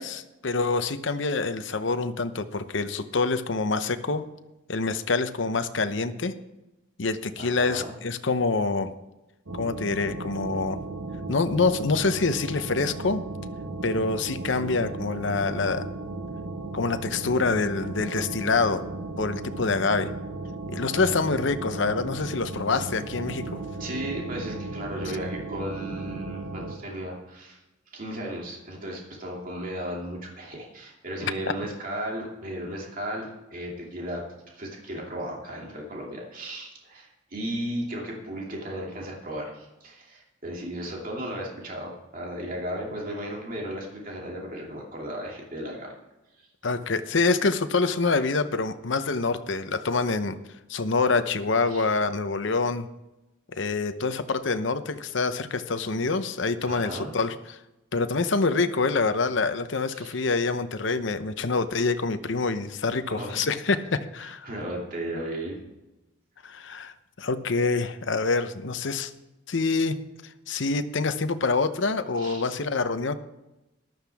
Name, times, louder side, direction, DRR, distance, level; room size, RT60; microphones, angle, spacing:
voice 1, 0.0-4.2 4.7-6.3 7.0-8.9 9.6-10.8 11.3-13.2 13.8-15.9 16.7-18.9 19.2-20.1 20.7-23.6 46.6-50.3 50.7-52.9 53.6-57.6 57.9-64.5 66.4-69.1 69.5-69.9 70.5-73.1, left 3 dB, 70° left, 10 dB, 0.8 m, -26 dB
voice 2, 7.4-7.9 20.9-21.2 23.8-27.6 27.9-34.3 34.5-45.9 46.4-46.5 51.7-51.8 56.6-57.1 59.9-60.2 63.1-63.4 64.2-65.6 72.2-72.5, right 1 dB, 45° right, -2 dB, 2.6 m, -35 dB
sound 1, 9.5-26.8, right 2 dB, 90° right, 1.1 m, -35 dB
14.5 x 12.0 x 3.5 m, 0.98 s
head